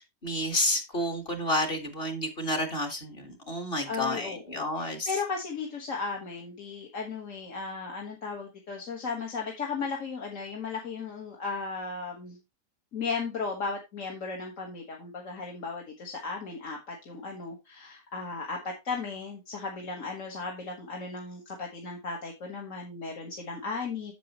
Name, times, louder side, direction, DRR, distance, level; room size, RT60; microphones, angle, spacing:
voice 1, 0.2-5.1, left 1 dB, 35° left, 5 dB, 1.6 m, -30 dB
voice 2, 3.9-12.4 12.9-24.1, left 4 dB, 50° left, -1 dB, 1.8 m, -36 dB
9.3 x 6.9 x 3.0 m, 0.23 s
omnidirectional pair, 1.8 m